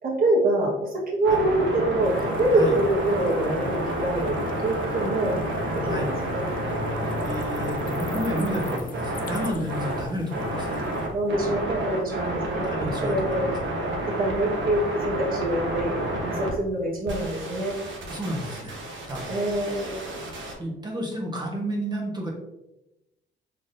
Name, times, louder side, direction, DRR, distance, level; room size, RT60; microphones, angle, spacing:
voice 1, 0.0-4.4 4.6-5.4 5.7-6.4 11.1-12.7 13.0-13.5 14.2-17.8 19.3-20.2, right 1 dB, 45° right, -3 dB, 1.5 m, -25 dB
sound 1, 1.2-16.5 17.1-20.5, right 1 dB, 70° right, 1.1 m, -30 dB
sound 2, 2.0-11.1, left 4 dB, 45° left, 0.5 m, -39 dB
voice 2, 7.0-10.8 12.6-13.5 18.1-18.7 19.1-19.3 20.6-22.3, equal, 20° right, -1 dB, 1.2 m, -31 dB
3.9 x 3.5 x 2.6 m, 0.93 s
cardioid pair, 90°, 20 cm